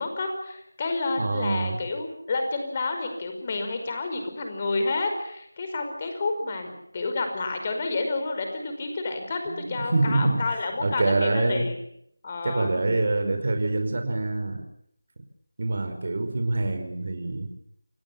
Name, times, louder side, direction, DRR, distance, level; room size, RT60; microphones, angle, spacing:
voice 1, 0.0-11.8 12.2-12.7, left 3 dB, 30° left, 5 dB, 5.3 m, -30 dB
voice 2, 1.2-1.8 9.5-10.4 10.8-11.6 12.4-14.6 15.6-17.5, right 2 dB, 45° right, 7 dB, 5.2 m, -25 dB
29.0 x 18.5 x 7.3 m, 0.70 s
figure-of-eight pair, 165°, 0 cm